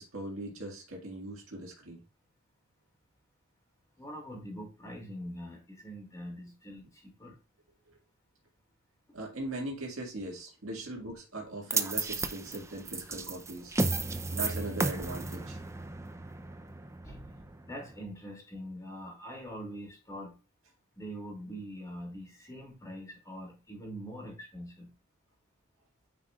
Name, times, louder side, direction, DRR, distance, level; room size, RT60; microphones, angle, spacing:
voice 1, 0.0-2.0 9.1-13.7 14.3-15.6, right 2 dB, 70° right, 1.9 m, -40 dB
voice 2, 4.0-7.4 10.7-10.8 13.8-13.9 17.0-20.4 21.0-24.9, equal, 15° left, 2.5 m, -44 dB
sound 1, 11.7-18.0, right 3 dB, 15° right, 0.5 m, -34 dB
9.4 x 4.8 x 2.4 m
head